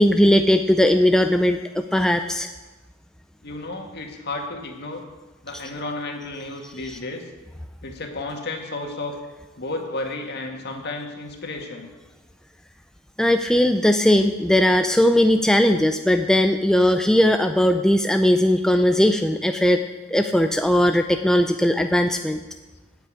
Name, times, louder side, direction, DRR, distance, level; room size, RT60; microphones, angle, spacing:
voice 1, 0.0-2.5 6.9-7.0 13.2-22.4, left 1 dB, 5° left, 6 dB, 0.4 m, -19 dB
voice 2, 3.4-5.0 5.4-7.2 7.8-9.2 9.6-11.9, left 2 dB, 50° left, 3 dB, 1.8 m, -32 dB
8.7 x 8.3 x 8.8 m, 1.2 s
head